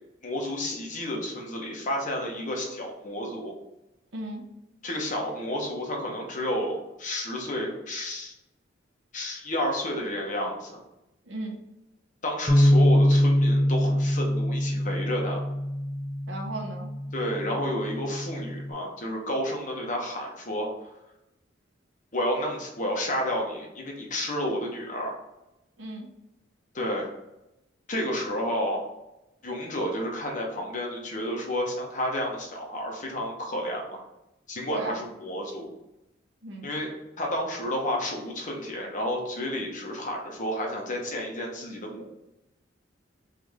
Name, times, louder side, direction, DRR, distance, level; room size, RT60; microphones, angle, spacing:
voice 1, 0.2-3.5 4.8-8.3 9.1-10.8 12.2-15.4 17.1-20.7 22.1-25.2 26.7-27.1 27.9-28.8 29.4-34.0 34.5-35.7 36.6-36.9 37.2-42.1, left 1 dB, 45° left, 0 dB, 1.0 m, -31 dB
voice 2, 4.1-4.5 11.2-11.6 16.3-16.9 25.8-26.1 34.7-35.1 36.4-36.7, right 2 dB, 85° right, 2 dB, 0.9 m, -35 dB
Bass guitar, 12.5-18.7, equal, 20° left, 0.4 m, -24 dB
3.4 x 3.4 x 3.6 m, 0.91 s
head